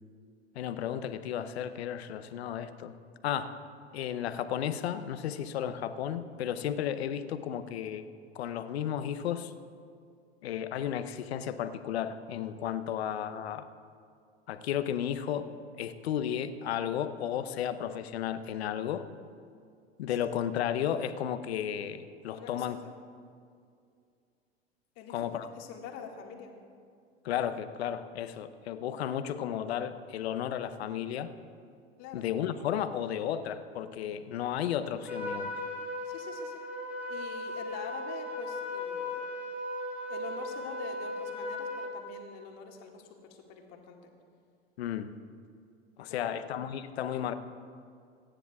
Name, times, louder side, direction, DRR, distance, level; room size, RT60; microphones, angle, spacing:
voice 1, 0.5-2.9 3.2-3.5 3.9-8.0 8.3-9.5 10.4-13.7 14.5-15.5 15.7-19.0 20.0-22.8 25.1-25.5 27.2-31.3 32.1-35.5 44.8-45.1 46.0-47.3, left 9 dB, 80° left, 10 dB, 0.8 m, -33 dB
voice 2, 22.4-22.9 25.0-25.3 25.6-26.5 32.0-32.3 36.0-36.6 37.1-39.3 40.1-44.0 46.1-46.5, left 6 dB, 55° left, 1 dB, 2.0 m, -45 dB
Trumpet, 35.1-42.0, left 1 dB, 5° right, 2.7 m, -37 dB
26.5 x 10.0 x 2.4 m, 2.3 s
hypercardioid pair, 85°, 31 cm